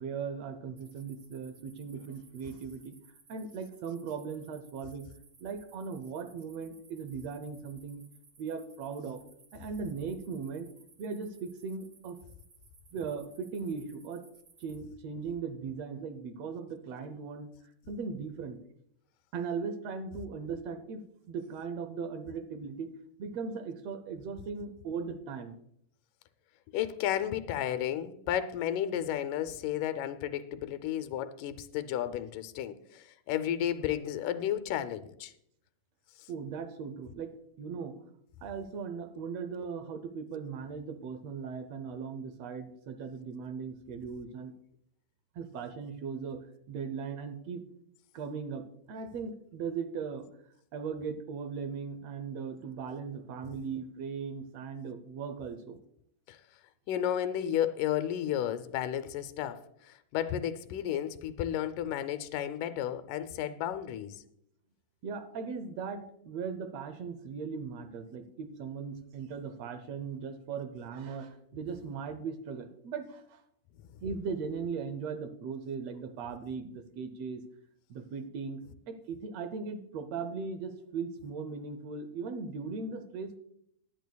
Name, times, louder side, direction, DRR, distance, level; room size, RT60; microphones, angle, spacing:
voice 1, 0.0-2.9 3.3-5.1 5.4-8.0 8.4-9.2 9.5-10.7 11.0-12.2 12.9-14.2 14.6-17.5 17.8-18.6 19.3-21.0 21.3-22.9 23.2-25.6 36.3-38.0 38.4-44.5 45.3-47.6 48.1-50.3 50.7-55.8 65.0-73.4 74.0-77.4 77.9-83.4, right 5 dB, 75° right, 1.6 m, -38 dB
sound 1, 0.8-14.8, right 4 dB, 45° right, 2.2 m, -61 dB
voice 2, 26.7-35.3 56.3-56.4 56.9-64.2, left 10 dB, 85° left, 2.2 m, -33 dB
18.5 x 10.5 x 2.3 m
omnidirectional pair, 3.7 m